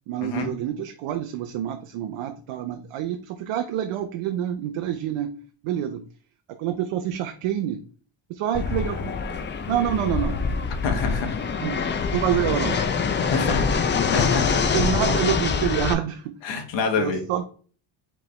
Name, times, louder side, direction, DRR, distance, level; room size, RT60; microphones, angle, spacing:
voice 1, 0.1-6.0 6.5-7.8 8.3-9.3 9.7-10.4 11.6-11.8 12.1-12.8 14.6-16.4 17.0-17.4, right 10 dB, 80° right, 6 dB, 0.6 m, -27 dB
Fixed-wing aircraft airplane, 8.5-15.9, left 5 dB, 25° left, 0.3 m, -24 dB
voice 2, 10.8-11.4 13.3-13.6 14.1-14.5 16.4-17.2, left 5 dB, 60° left, 5 dB, 1.2 m, -26 dB
4.9 x 3.3 x 3.2 m, 0.41 s
cardioid pair, 120°, 50 cm